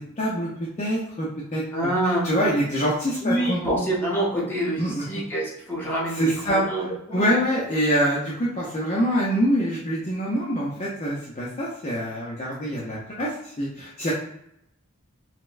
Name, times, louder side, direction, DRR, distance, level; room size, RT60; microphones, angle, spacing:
voice 1, 0.2-0.5 0.8-1.9 2.2-3.6 4.3-4.4 4.8-5.0 6.1-6.6 7.1-14.1, equal, 30° left, -6 dB, 0.5 m, -25 dB
voice 2, 1.7-2.3 3.2-6.9 7.2-7.3, right 1 dB, 10° left, -6 dB, 0.9 m, -26 dB
4.1 x 2.0 x 2.4 m, 0.76 s
head